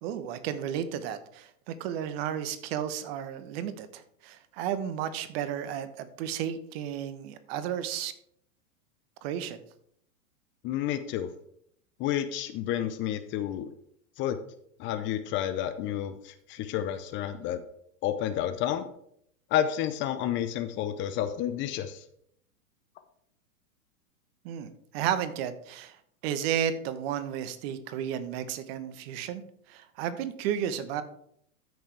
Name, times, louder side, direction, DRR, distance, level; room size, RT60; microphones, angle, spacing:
voice 1, 0.0-8.1 9.2-9.6 24.4-26.0 26.2-29.4 29.7-31.0, right 9 dB, 45° right, 12 dB, 1.1 m, -33 dB
voice 2, 10.6-11.3 12.0-13.7 14.2-14.4 14.8-17.6 18.0-18.9 19.5-22.0, left 11 dB, 30° left, 10 dB, 0.6 m, -30 dB
13.5 x 6.2 x 3.3 m, 0.69 s
hypercardioid pair, 105°, 43 cm